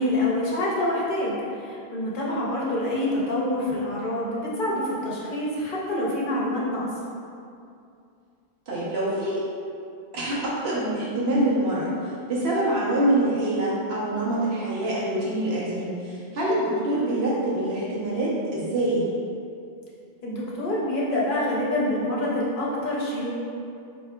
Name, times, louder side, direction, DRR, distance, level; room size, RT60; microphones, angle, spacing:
voice 1, 0.0-6.9 20.2-23.3, left 1 dB, 60° left, -5 dB, 0.8 m, -26 dB
voice 2, 8.7-9.4 10.1-11.9 12.3-19.1, right 1 dB, 75° right, -7 dB, 1.1 m, -25 dB
4.5 x 2.9 x 2.2 m, 2.5 s
omnidirectional pair, 1.1 m